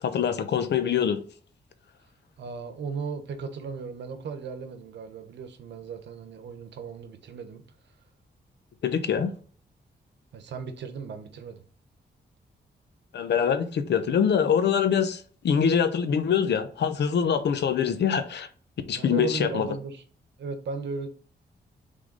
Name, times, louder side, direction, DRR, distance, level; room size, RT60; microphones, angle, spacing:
voice 1, 0.0-1.2 8.8-9.3 13.1-18.5 18.9-19.7, left 7 dB, 75° left, 0.8 m, -24 dB
voice 2, 2.4-7.6 10.3-11.6 19.0-20.0 20.4-21.1, right 5 dB, 85° right, 1.0 m, -36 dB
6.3 x 3.9 x 3.9 m
wide cardioid pair, 120°, 18 cm